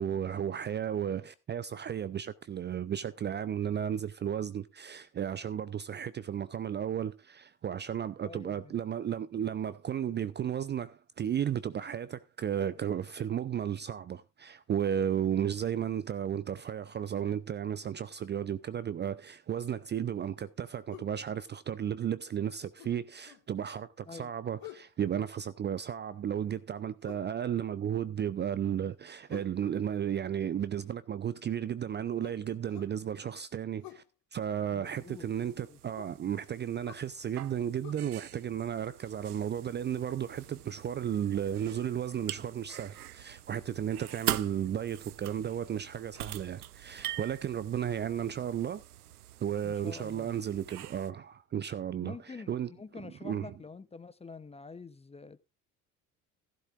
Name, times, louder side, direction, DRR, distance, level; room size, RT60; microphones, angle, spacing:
voice 1, 0.0-34.0 34.3-48.8 49.4-52.2 52.5-52.7 53.0-53.5, right 9 dB, 25° right, 0.5 m, -34 dB
voice 2, 8.2-8.7 24.1-24.3 34.7-35.8 49.6-50.3 52.0-55.4, left 4 dB, 15° left, 0.7 m, -47 dB
sound 1, 20.9-21.2 22.8-23.5 24.6-24.9 27.0-27.3 29.3-29.6 32.2-33.0 33.8-34.1 36.0-36.2 36.8-37.1 37.8-37.9, left 14 dB, 50° left, 1.8 m, -49 dB
sound 2, 34.8-51.1, right 13 dB, 85° right, 0.5 m, -43 dB
16.0 x 11.5 x 2.4 m
figure-of-eight pair, 60°, 44 cm